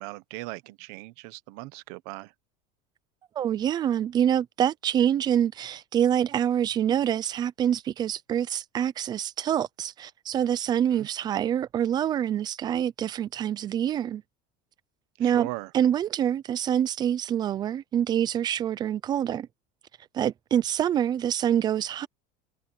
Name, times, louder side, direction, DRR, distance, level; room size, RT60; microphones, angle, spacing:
voice 1, 0.0-2.3 10.9-11.1 15.2-15.7, right 22 dB, 60° right, 1.1 m, -38 dB
voice 2, 3.4-14.2 15.2-15.5 15.7-19.5 20.1-22.1, right 10 dB, 20° right, 0.4 m, -26 dB
cardioid pair, 175°, 20 cm